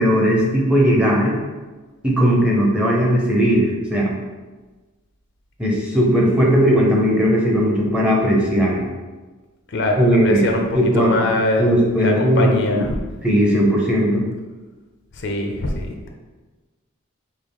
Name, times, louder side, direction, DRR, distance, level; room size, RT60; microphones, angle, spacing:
voice 1, 0.0-1.3 2.0-4.1 5.6-8.9 10.0-10.5 10.7-11.3 11.6-12.8 13.2-14.2, equal, 5° right, -3 dB, 0.7 m, -17 dB
voice 2, 9.7-10.6 10.9-13.0 15.2-16.1, left 2 dB, 55° left, 2 dB, 0.5 m, -22 dB
5.3 x 2.0 x 4.7 m, 1.3 s
head